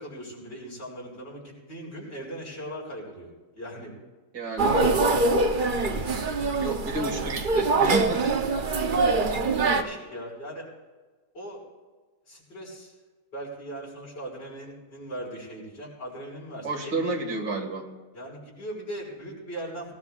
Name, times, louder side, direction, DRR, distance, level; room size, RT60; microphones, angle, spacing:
voice 1, 0.0-3.9 8.5-8.7 9.7-10.7 11.3-11.6 12.3-12.9 13.3-17.2 18.1-19.9, right 1 dB, 75° left, -3 dB, 6.4 m, -39 dB
voice 2, 4.3-4.7 6.6-8.4 16.6-17.9, right 3 dB, 85° right, 1 dB, 2.7 m, -30 dB
sound 1, 4.6-9.8, right 3 dB, 40° right, 0.7 m, -24 dB
25.0 x 17.5 x 2.5 m, 1.3 s
omnidirectional pair, 1.8 m